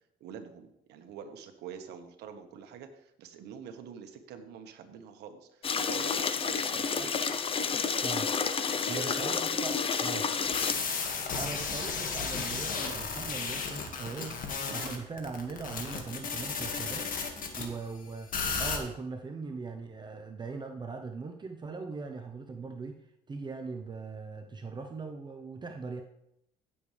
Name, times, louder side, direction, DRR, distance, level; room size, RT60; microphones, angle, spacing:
voice 1, 0.2-7.0 7.3-7.4 8.8-9.3 10.7-10.9 14.7-14.9 17.4-17.7, right 7 dB, 80° right, 6 dB, 1.4 m, -45 dB
sound 1, 5.6-10.7, left 6 dB, 35° left, 0.7 m, -30 dB
voice 2, 8.0-8.3 8.9-10.2 11.3-14.4 14.7-17.1 17.5-26.0, right 4 dB, 25° right, 4 dB, 0.8 m, -40 dB
sound 2, 10.5-17.7 18.3-18.8, left 5 dB, 55° left, 1.9 m, -34 dB
16.0 x 7.0 x 3.4 m, 0.78 s
cardioid pair, 110°, 17 cm